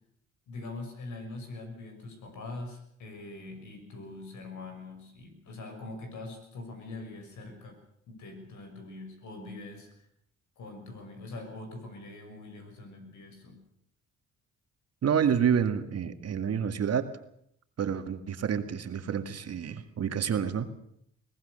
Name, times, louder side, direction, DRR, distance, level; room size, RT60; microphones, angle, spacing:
voice 1, 0.5-7.8 8.1-10.1 10.6-13.6, left 2 dB, 75° left, 5 dB, 6.6 m, -43 dB
voice 2, 15.0-17.1 17.8-20.7, right 8 dB, 55° right, 8 dB, 2.0 m, -28 dB
22.5 x 19.0 x 6.8 m, 0.71 s
cardioid pair, 90°, 30 cm